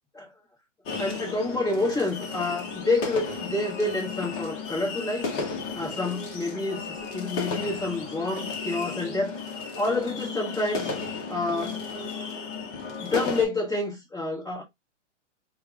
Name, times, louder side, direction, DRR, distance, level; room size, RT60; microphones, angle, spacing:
sound 1, 0.9-13.5, left 4 dB, 30° left, 1.0 m, -34 dB
voice 1, 1.0-5.3 5.7-9.4 9.8-10.9 11.3-11.8 13.0-14.6, left 2 dB, 10° left, 1.3 m, -28 dB
3.3 x 2.4 x 3.1 m
hypercardioid pair, 145°, 37 cm